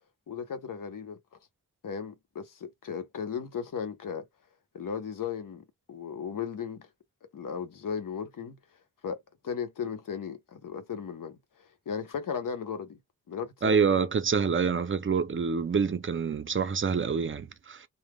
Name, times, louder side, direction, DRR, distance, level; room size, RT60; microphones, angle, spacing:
voice 1, 0.3-1.2 1.8-4.3 4.7-6.9 7.3-8.6 9.0-9.2 9.4-13.0 13.3-13.9, left 7 dB, 75° left, 0.9 m, -36 dB
voice 2, 13.6-17.9, right 5 dB, 40° right, 0.5 m, -26 dB
3.3 x 2.1 x 2.2 m
wide cardioid pair, 85°, 32 cm